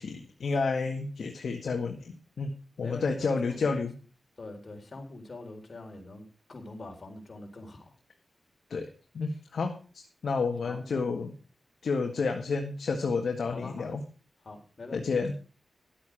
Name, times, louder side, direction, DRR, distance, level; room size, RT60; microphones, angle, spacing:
voice 1, 0.0-2.5 2.8-3.9 8.7-11.3 11.8-14.0 14.9-15.3, left 4 dB, 80° left, 1.9 m, -30 dB
voice 2, 2.8-3.8 4.4-7.9 10.6-11.0 13.5-14.0 14.4-15.3, left 2 dB, 50° left, 4.0 m, -44 dB
12.0 x 8.4 x 6.2 m
cardioid pair, 65°, 0 cm